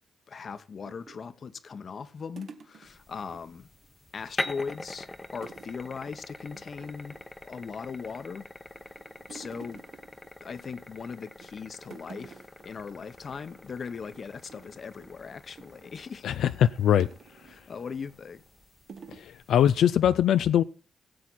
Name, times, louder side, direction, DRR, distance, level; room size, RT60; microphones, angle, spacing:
voice 1, 0.3-3.7 4.1-5.1 5.3-7.2 7.4-8.5 9.3-9.8 10.4-16.2 17.5-18.4, left 5 dB, 45° left, 1.1 m, -39 dB
sound 1, 0.8-3.4 3.7-3.9 4.2-4.9 5.4-5.8 6.0-6.2 6.5-7.4 7.9-8.4 8.7-10.9 11.3-11.6 11.8-12.7 13.0-13.2 13.5-13.7 14.1-15.9 17.0-17.7 18.3-18.4 18.9-19.3, right 5 dB, 60° right, 1.5 m, -50 dB
sound 2, 2.9-19.8, left 2 dB, 15° left, 1.0 m, -44 dB
voice 2, 16.2-17.1 19.1-20.6, left 10 dB, 85° left, 0.4 m, -22 dB
18.0 x 7.7 x 4.2 m
cardioid pair, 110°, 0 cm